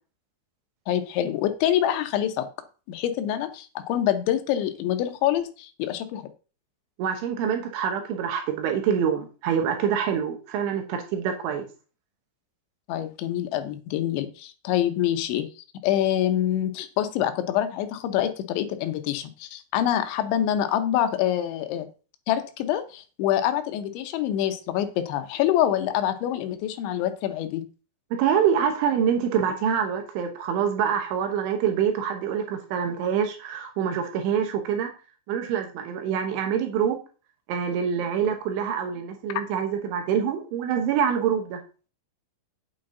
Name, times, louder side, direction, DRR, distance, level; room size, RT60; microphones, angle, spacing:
voice 1, 0.9-2.5 2.9-6.3 12.9-15.5 15.8-21.9 22.3-27.6, left 11 dB, 75° left, 8 dB, 3.1 m, -26 dB
voice 2, 7.0-11.7 28.1-34.9 35.3-37.0 37.5-41.6, right 8 dB, 80° right, 5 dB, 3.5 m, -25 dB
8.8 x 8.3 x 3.8 m, 0.36 s
omnidirectional pair, 5.6 m